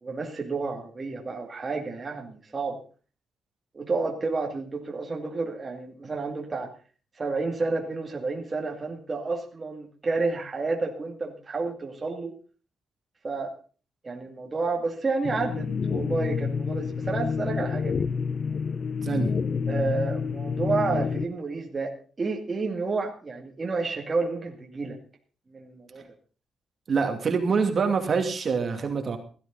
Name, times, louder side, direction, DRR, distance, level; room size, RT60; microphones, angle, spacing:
voice 1, 0.0-2.8 3.7-6.7 7.2-12.3 13.2-13.5 14.0-18.0 19.7-25.0 25.5-26.1, right 3 dB, 25° right, 1 dB, 2.5 m, -30 dB
sound 1, 15.2-21.3, left 5 dB, 45° left, 0.6 m, -28 dB
voice 2, 26.9-29.2, right 5 dB, 45° right, 4 dB, 2.6 m, -25 dB
17.0 x 13.0 x 4.0 m, 0.38 s
cardioid pair, 135°, 0 cm